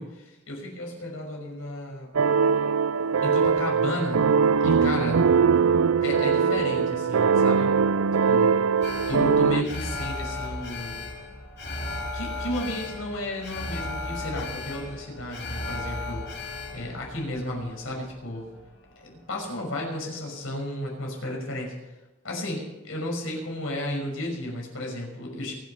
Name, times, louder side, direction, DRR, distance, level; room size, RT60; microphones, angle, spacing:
voice 1, 0.0-2.1 3.2-4.3 4.6-5.3 6.0-7.7 8.3-8.5 9.1-11.0 12.1-16.4 16.7-18.5 19.0-21.8 22.2-25.5, left 1 dB, 80° left, 0 dB, 5.9 m, -33 dB
sound 1, 2.1-9.6, right 5 dB, 85° right, 0.5 m, -21 dB
Alarm, 8.8-19.1 19.4-19.5, left 2 dB, 55° left, 3.0 m, -36 dB
24.0 x 8.4 x 5.6 m, 1.1 s
head